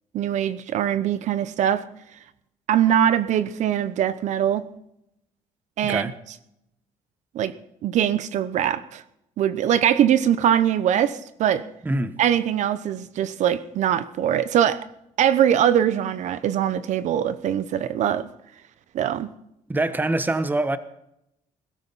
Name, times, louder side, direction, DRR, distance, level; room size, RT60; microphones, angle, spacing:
voice 1, 0.1-1.8 2.7-4.6 5.8-6.1 7.3-7.5 7.8-9.0 9.4-11.6 12.2-14.8 15.2-18.3 18.9-19.3, right 10 dB, 70° right, 0.9 m, -22 dB
voice 2, 5.8-6.2 11.8-12.2 19.7-20.8, right 2 dB, 15° right, 1.2 m, -24 dB
21.5 x 13.0 x 4.1 m
cardioid pair, 120°, 13 cm